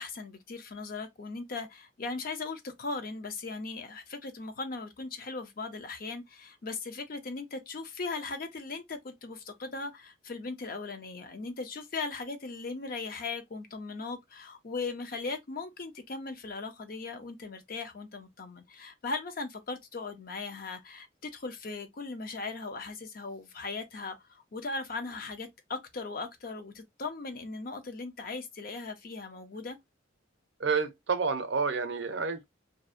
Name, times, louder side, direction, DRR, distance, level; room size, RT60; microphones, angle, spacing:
voice 1, 0.0-29.8, left 3 dB, 45° left, 0.5 m, -38 dB
voice 2, 30.6-32.4, right 5 dB, 65° right, 0.5 m, -29 dB
2.6 x 2.0 x 2.4 m
head